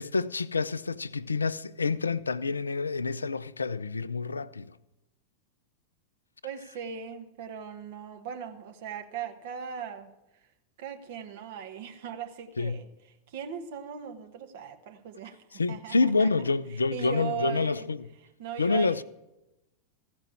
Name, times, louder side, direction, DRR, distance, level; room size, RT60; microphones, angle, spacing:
voice 1, 0.0-4.7 12.6-12.8 15.6-18.0 18.6-19.0, left 4 dB, 75° left, 0.4 m, -28 dB
voice 2, 6.4-10.1 10.8-12.9 13.3-17.9 18.4-19.0, right 7 dB, 50° right, 1.2 m, -39 dB
15.0 x 5.2 x 8.3 m
figure-of-eight pair, 90°, 0 cm